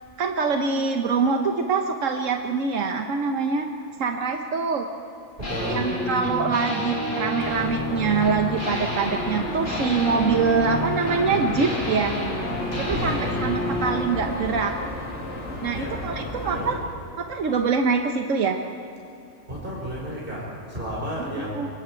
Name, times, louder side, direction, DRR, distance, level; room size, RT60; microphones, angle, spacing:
voice 1, 0.2-3.7 4.0-4.8 5.7-12.2 12.8-14.7 15.6-16.8 17.2-18.6 21.5-21.8, right 5 dB, 90° right, 4 dB, 1.4 m, -24 dB
sound 1, 5.4-14.1, left 1 dB, 85° left, 4.9 m, -29 dB
voice 2, 5.4-6.0 12.7-13.5 15.7-16.0 16.5-16.9 19.5-21.8, equal, 45° right, -4 dB, 5.1 m, -32 dB
sound 2, 7.4-16.8, left 1 dB, 70° left, 2.8 m, -33 dB
27.0 x 22.5 x 4.5 m, 2.7 s
omnidirectional pair, 1.3 m